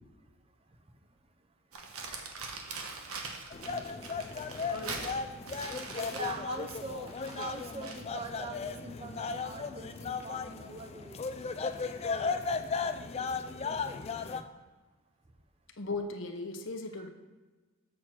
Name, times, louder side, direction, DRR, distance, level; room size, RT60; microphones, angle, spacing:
Crumpling crinkling, 1.7-8.1, right 4 dB, 75° right, 1.1 m, -43 dB
sound 1, 3.5-14.4, left 4 dB, 25° left, 0.3 m, -36 dB
voice 1, 4.7-5.2 15.8-17.1, left 3 dB, 55° left, 5 dB, 0.8 m, -38 dB
voice 2, 6.1-11.2 17.0-17.1, right 3 dB, 25° right, 5 dB, 0.6 m, -43 dB
7.4 x 6.3 x 4.4 m, 1.3 s
head